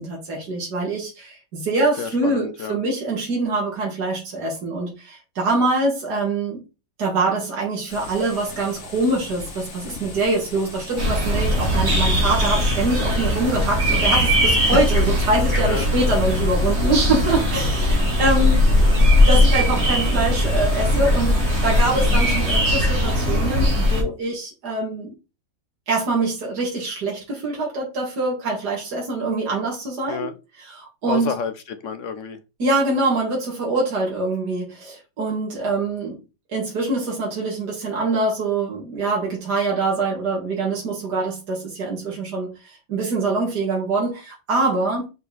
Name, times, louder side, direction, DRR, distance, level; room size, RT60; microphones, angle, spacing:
voice 1, 0.0-6.6 7.0-18.9 19.3-25.1 25.9-30.3 30.6-31.3 32.6-36.2 36.5-45.1, right 2 dB, 60° right, 2.7 m, -24 dB
voice 2, 2.0-2.8 15.7-15.9 30.1-30.3 31.1-32.4, left 7 dB, 65° left, 0.8 m, -29 dB
sound 1, 7.9-22.6, left 2 dB, 40° left, 1.7 m, -35 dB
sound 2, 11.0-24.0, left 1 dB, 35° right, 2.2 m, -19 dB
5.6 x 4.8 x 4.0 m
omnidirectional pair, 2.0 m